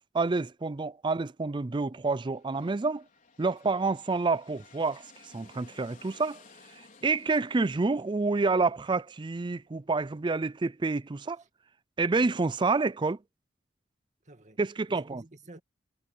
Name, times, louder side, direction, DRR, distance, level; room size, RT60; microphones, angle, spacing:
voice 1, 0.1-3.0 3.4-6.4 7.0-11.4 12.0-13.2 14.6-15.2, right 3 dB, 25° right, 0.4 m, -28 dB
sound 1, 2.1-9.8, left 4 dB, 45° left, 4.7 m, -58 dB
voice 2, 14.2-14.6 14.9-15.6, right 2 dB, 40° right, 2.4 m, -51 dB
head